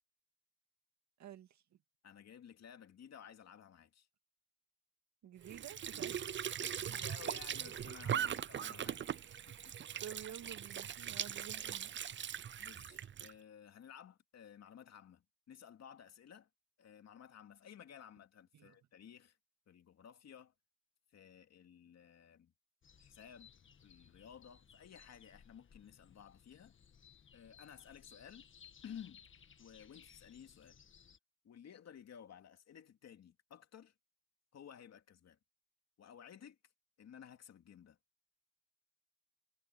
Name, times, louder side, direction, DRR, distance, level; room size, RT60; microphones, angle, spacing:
voice 1, 1.2-1.8 5.2-6.4 8.1-8.5 10.0-11.9 18.5-18.8, right 9 dB, 65° right, 2.2 m, -51 dB
voice 2, 2.0-4.1 6.6-9.7 11.0-11.2 12.6-16.5 16.8-19.4 19.7-20.5 21.1-22.5 23.0-23.5 23.8-26.8 27.3-28.5 28.8-29.2 29.6-30.8 31.4-33.9 34.5-35.4 36.0-36.6 37.0-38.0, left 8 dB, 60° left, 2.7 m, -55 dB
Squeak / Sink (filling or washing) / Trickle dribble, 5.4-13.3, right 9 dB, 40° right, 0.6 m, -40 dB
sound 1, 22.8-31.2, left 7 dB, 40° left, 1.5 m, -62 dB
cardioid pair, 90°, 30 cm